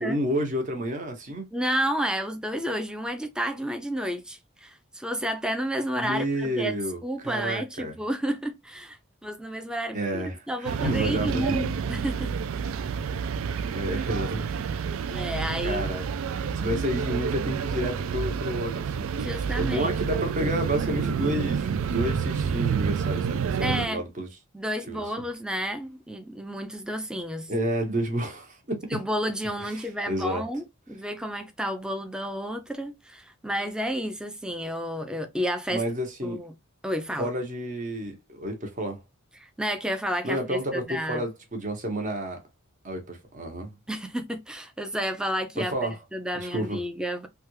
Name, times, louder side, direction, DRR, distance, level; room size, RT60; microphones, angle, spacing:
voice 1, 0.0-1.5 5.9-7.9 9.9-10.4 10.8-11.6 13.7-14.7 15.0-15.3 15.6-16.0 16.3-19.1 19.6-24.3 24.9-25.0 27.5-28.8 29.7-30.4 35.7-36.4 37.2-39.0 40.2-42.4 42.8-43.7 45.6-46.0 46.4-46.8, right 1 dB, 40° right, 1.0 m, -30 dB
voice 2, 1.5-12.3 13.5-13.7 15.1-15.8 19.2-19.9 23.6-24.0 24.5-27.5 28.9-35.8 36.2-36.5 36.8-37.3 39.4-41.2 43.9-45.7 46.1-47.3, equal, 5° right, 0.5 m, -31 dB
sound 1, 10.6-23.9, right 6 dB, 80° right, 0.3 m, -29 dB
3.4 x 2.3 x 3.1 m
head